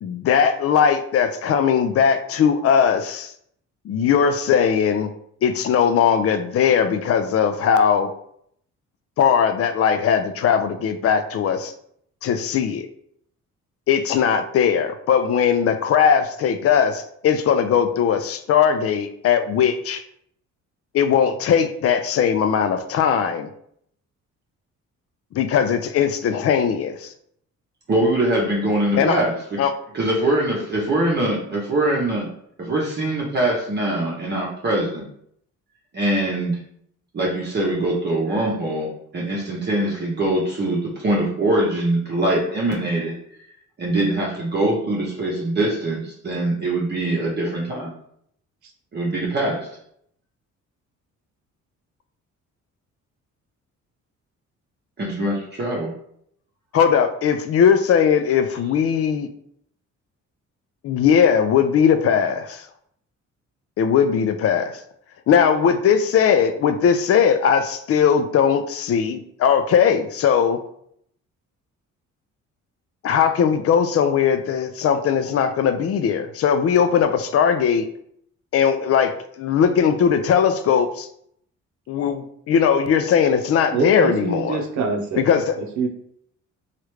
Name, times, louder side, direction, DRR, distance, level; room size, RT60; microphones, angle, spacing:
voice 1, 0.0-3.3 3.9-5.1 5.4-8.1 9.2-11.7 12.2-12.9 13.9-20.0 20.9-23.5 25.3-27.1 29.0-29.2 29.6-29.7 56.7-59.3 60.8-62.7 63.8-64.8 65.3-70.6 73.0-77.9 78.5-81.1 81.9-84.6 85.2-85.6, left 7 dB, 50° left, 9 dB, 0.4 m, -19 dB
voice 2, 27.9-29.6 29.9-32.3 32.6-35.0 35.9-36.6 37.1-43.1 43.8-47.9 48.9-49.7 55.0-55.9, right 1 dB, 35° right, -4 dB, 0.8 m, -23 dB
voice 3, 83.7-85.3 85.6-85.9, right 4 dB, 70° right, 2 dB, 0.7 m, -25 dB
3.1 x 2.4 x 3.1 m, 0.69 s
cardioid pair, 90°, 30 cm